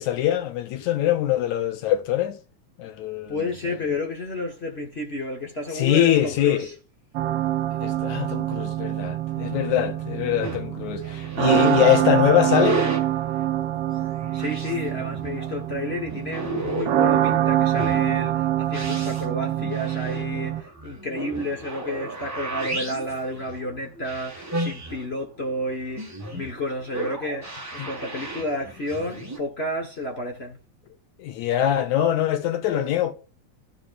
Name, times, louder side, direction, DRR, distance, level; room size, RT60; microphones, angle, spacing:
voice 1, 0.0-2.4 2.8-3.4 5.7-6.7 7.8-12.8 27.8-27.9 31.2-33.1, left 12 dB, 80° left, 2.5 m, -23 dB
voice 2, 3.3-6.7 14.3-30.6, left 1 dB, 50° left, 0.7 m, -31 dB
sound 1, 7.1-20.6, right 12 dB, 80° right, 1.3 m, -25 dB
sound 2, 10.4-29.4, right 2 dB, 10° right, 0.9 m, -34 dB
13.0 x 5.9 x 2.5 m
omnidirectional pair, 3.3 m